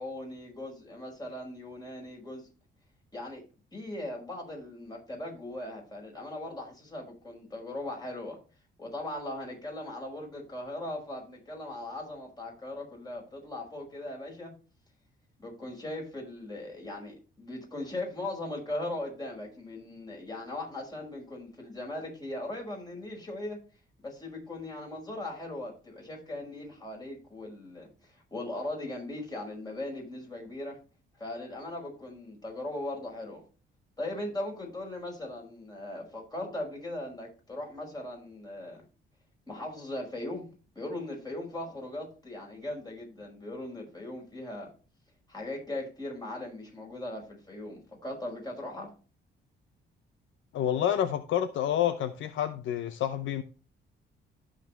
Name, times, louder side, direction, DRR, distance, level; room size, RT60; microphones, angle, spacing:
voice 1, 0.0-2.5 3.1-3.4 3.7-8.4 8.8-14.5 15.4-23.6 24.0-30.8 31.2-33.4 34.0-38.8 39.5-40.5 40.8-44.7 45.3-48.9, left 1 dB, 20° left, 5.5 m, -39 dB
voice 2, 50.5-53.4, left 10 dB, 75° left, 0.7 m, -28 dB
15.0 x 5.2 x 3.2 m
cardioid pair, 90°, 20 cm